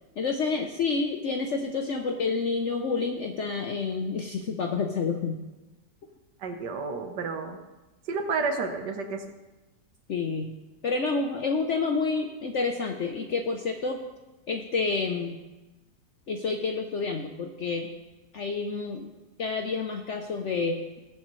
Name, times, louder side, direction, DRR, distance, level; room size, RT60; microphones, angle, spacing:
voice 1, 0.2-5.4 10.1-10.5 10.8-14.0 14.5-15.4 16.3-17.9 18.3-19.1 19.4-20.8, left 4 dB, 55° left, 3 dB, 0.9 m, -29 dB
voice 2, 6.4-7.6 8.1-9.2, right 4 dB, 80° right, 4 dB, 1.7 m, -30 dB
21.5 x 7.2 x 3.1 m, 1.1 s
omnidirectional pair, 1.8 m